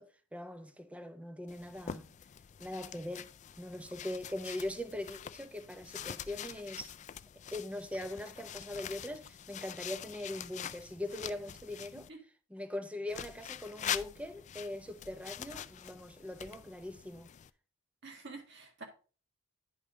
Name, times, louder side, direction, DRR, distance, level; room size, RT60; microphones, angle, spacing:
voice 1, 0.0-2.2 2.6-3.3 3.6-6.9 7.5-12.1 12.5-17.3, left 1 dB, 5° right, 0.7 m, -41 dB
sound 1, 1.5-12.1 13.1-17.5, left 9 dB, 35° left, 0.3 m, -44 dB
voice 2, 18.0-18.8, right 3 dB, 60° right, 1.8 m, -47 dB
9.5 x 5.3 x 3.7 m
head